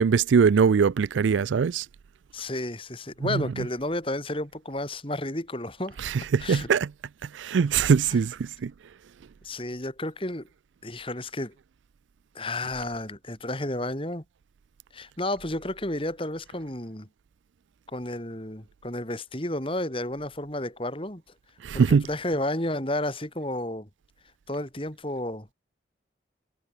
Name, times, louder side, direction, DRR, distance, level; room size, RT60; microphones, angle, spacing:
voice 1, 0.0-1.9 3.3-3.4 6.0-6.9 7.3-8.7 21.6-22.0, right 6 dB, 90° right, 0.4 m, -22 dB
voice 2, 2.3-6.0 6.4-6.7 8.1-8.2 9.4-10.5 10.8-11.5 12.3-14.2 14.9-17.1 17.9-21.2 21.7-23.9 24.5-25.5, left 1 dB, 30° left, 3.3 m, -32 dB
head